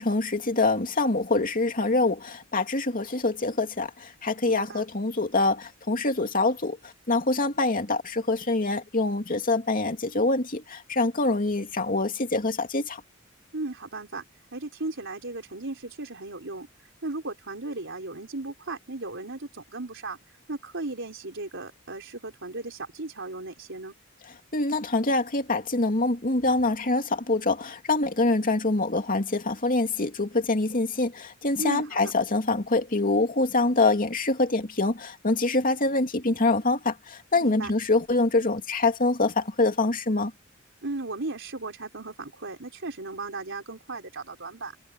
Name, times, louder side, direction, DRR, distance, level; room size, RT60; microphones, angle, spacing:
voice 1, 0.0-6.8 7.1-13.0 24.5-40.3, left 2 dB, 40° left, 2.7 m, -25 dB
voice 2, 4.5-4.8 13.5-14.2 14.5-16.7 17.0-20.2 20.5-23.9 31.6-32.1 37.4-37.7 40.8-44.8, right 2 dB, 65° right, 4.6 m, -36 dB
head